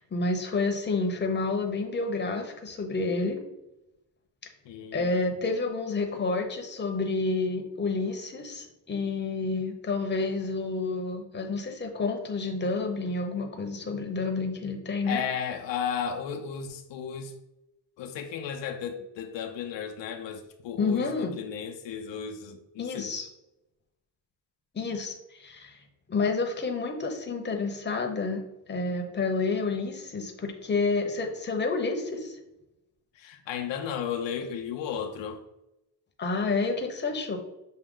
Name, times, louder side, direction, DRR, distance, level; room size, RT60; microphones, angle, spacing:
voice 1, 0.0-3.4 4.9-15.2 20.8-21.4 22.8-23.3 24.7-25.8 26.1-28.4 28.7-32.4 36.2-37.4, left 3 dB, 25° left, 3 dB, 0.8 m, -29 dB
voice 2, 4.7-5.4 15.1-17.3 18.0-23.1 33.1-35.4, left 8 dB, 85° left, 4 dB, 0.6 m, -34 dB
6.2 x 2.1 x 3.7 m, 0.92 s
cardioid pair, 95°, 43 cm